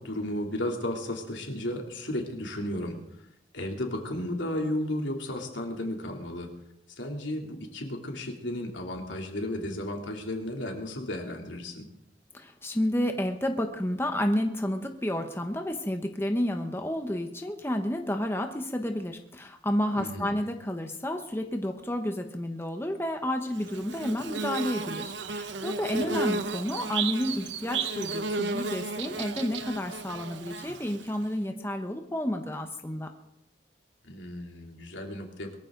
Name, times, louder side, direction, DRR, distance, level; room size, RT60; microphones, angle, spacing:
voice 1, 0.0-3.0 3.5-6.5 7.0-11.9 20.0-20.3 25.9-26.2 34.0-35.6, left 1 dB, 85° left, 1 dB, 3.1 m, -34 dB
voice 2, 12.3-33.1, left 1 dB, 15° left, 5 dB, 1.0 m, -30 dB
Bird / Buzz, 23.5-31.2, right 4 dB, 75° right, 0.9 m, -33 dB
22.5 x 14.5 x 3.9 m, 0.79 s
head